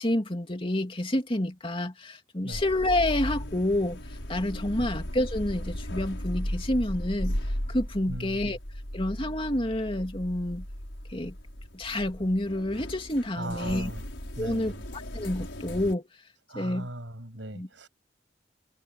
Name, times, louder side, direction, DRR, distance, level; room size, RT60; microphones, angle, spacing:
voice 1, 0.0-4.0 4.3-7.4 7.7-8.6 8.9-10.6 11.1-11.3 11.7-13.9 14.4-16.1 16.5-16.9 17.5-17.7, left 1 dB, 30° left, 2.7 m, -28 dB
sound 1, 2.5-15.9, equal, 90° left, 5.7 m, -36 dB
voice 2, 8.1-8.6 13.3-14.1 14.4-14.8 16.5-17.9, right 1 dB, 80° right, 7.1 m, -39 dB
head